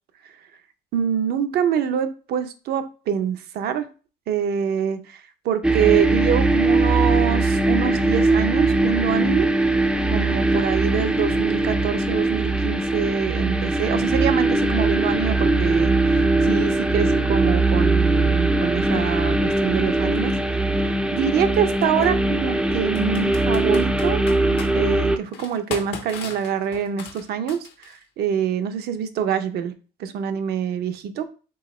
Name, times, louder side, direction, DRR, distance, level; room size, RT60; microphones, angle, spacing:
voice 1, 0.9-3.9 4.3-9.5 10.1-24.2 24.7-29.7 30.0-31.3, right 8 dB, 70° right, 9 dB, 0.7 m, -25 dB
sound 1, 5.6-25.2, right 2 dB, 5° right, 0.4 m, -20 dB
Computer keyboard, 20.1-20.2 21.8-22.1 22.9-24.7 25.3-28.0, left 6 dB, 80° left, 1.0 m, -36 dB
4.6 x 3.5 x 3.1 m, 0.36 s
cardioid pair, 110°, 17 cm